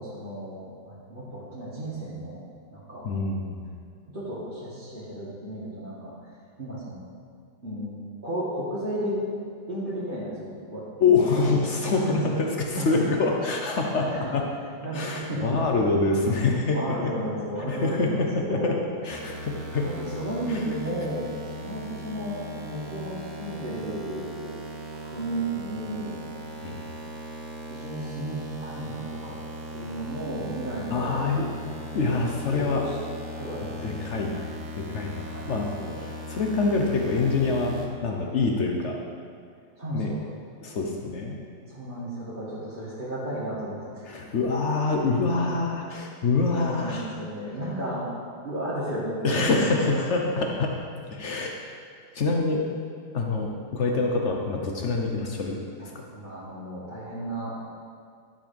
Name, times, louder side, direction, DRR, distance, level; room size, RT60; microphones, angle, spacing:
voice 1, 0.0-2.4 2.7-3.1 4.1-6.1 6.6-7.0 7.6-8.0 8.2-9.2 9.7-11.1 11.5-11.6 11.9-12.2 12.7-13.1 14.0-14.3 14.8-15.6 16.1-18.8 19.8-24.6 24.9-26.2 27.7-29.4 29.7-31.2 32.0-32.2 32.5-33.0 33.3-34.3 35.3-36.0 39.8-40.2 41.7-44.2 46.5-48.1 48.4-50.0 55.8-57.5, right 1 dB, 25° right, -10 dB, 1.6 m, -33 dB
voice 2, 3.0-3.7 11.0-14.4 14.9-17.1 17.6-18.8 19.0-19.9 20.5-20.6 26.6-26.8 30.9-31.5 31.9-32.8 33.8-34.5 34.7-35.7 36.0-37.7 38.0-39.0 39.9-40.1 40.6-41.4 44.1-47.1 49.2-50.7 51.1-51.5 52.1-52.7 53.1-55.9, left 3 dB, 70° left, 1 dB, 0.6 m, -25 dB
sound 1, 19.1-37.9, equal, 50° right, 1.3 m, -38 dB
11.5 x 5.7 x 5.3 m, 2.2 s
omnidirectional pair, 2.3 m